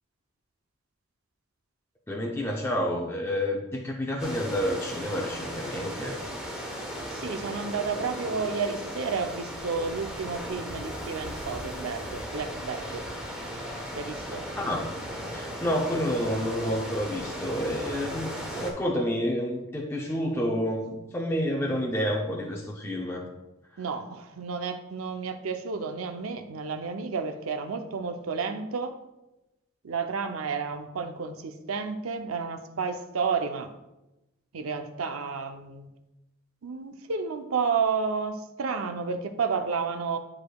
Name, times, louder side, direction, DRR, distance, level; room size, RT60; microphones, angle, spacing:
voice 1, 2.1-6.2 14.6-14.9 15.3-23.2, equal, 10° left, -2 dB, 0.5 m, -29 dB
sound 1, 4.2-18.7, equal, 5° right, 1.1 m, -36 dB
voice 2, 7.1-13.1 13.9-14.4 23.8-29.0 29.8-33.7 34.5-35.9 36.6-40.2, right 5 dB, 90° right, 7 dB, 0.6 m, -31 dB
10.0 x 4.8 x 2.3 m, 0.97 s
head